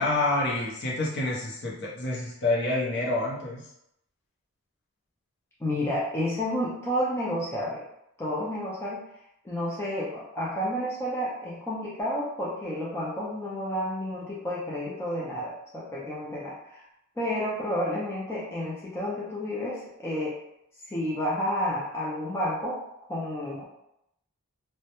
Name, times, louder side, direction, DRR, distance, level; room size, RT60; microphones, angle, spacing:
voice 1, 0.0-3.6, left 2 dB, 50° left, -4 dB, 0.6 m, -27 dB
voice 2, 5.6-7.8 8.2-9.0 9.4-16.8 17.2-20.4 20.9-22.8 23.1-23.6, equal, 10° left, -7 dB, 0.3 m, -30 dB
2.1 x 2.0 x 2.8 m, 0.80 s
head